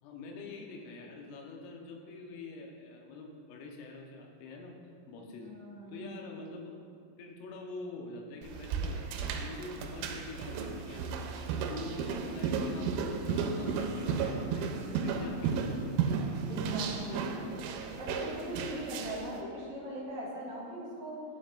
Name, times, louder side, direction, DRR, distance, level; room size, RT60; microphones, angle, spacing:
voice 1, 0.0-4.8 5.1-5.5 5.9-6.7 7.2-11.3 11.6-14.7 15.0-16.2, left 3 dB, 80° left, 1 dB, 3.6 m, -45 dB
voice 2, 5.2-6.1 16.5-17.4 18.0-21.2, equal, 35° left, -10 dB, 1.4 m, -40 dB
sound 1, 8.4-19.3, right 5 dB, 85° right, 3.1 m, -34 dB
12.0 x 10.0 x 2.6 m, 2.3 s
omnidirectional pair, 5.9 m